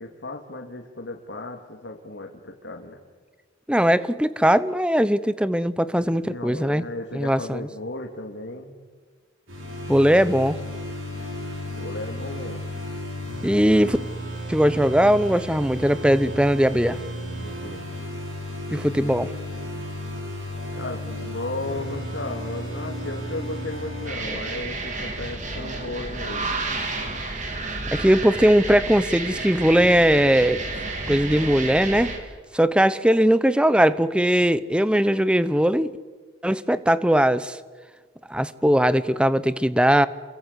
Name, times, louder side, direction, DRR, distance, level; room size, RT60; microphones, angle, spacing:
voice 1, 0.0-3.0 5.9-8.7 11.7-12.7 17.4-17.9 20.7-26.6, left 2 dB, 65° left, 1 dB, 2.4 m, -35 dB
voice 2, 3.7-6.8 7.1-7.7 9.9-10.6 13.4-14.0 14.5-17.0 18.7-19.3 27.9-30.6 31.1-32.1 32.5-35.9 36.4-37.6 38.3-40.1, equal, 5° right, 15 dB, 0.8 m, -19 dB
sound 1, 9.5-24.1, equal, 90° right, 6.3 m, -33 dB
sound 2, 24.1-32.2, right 3 dB, 40° right, 3.5 m, -31 dB
29.0 x 23.0 x 8.3 m, 1.5 s
head